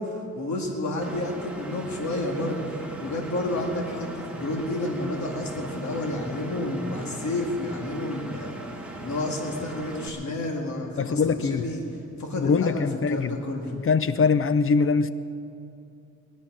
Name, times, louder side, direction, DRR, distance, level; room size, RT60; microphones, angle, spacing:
voice 1, 0.0-11.8 12.2-13.7, left 1 dB, 65° left, 1 dB, 2.1 m, -30 dB
Engine, 1.0-10.1, right 1 dB, 5° right, 1.9 m, -39 dB
voice 2, 11.0-11.7 12.4-13.4 13.7-15.1, left 5 dB, 45° left, 13 dB, 0.5 m, -23 dB
19.5 x 11.5 x 6.2 m, 2.7 s
wide cardioid pair, 115°, 31 cm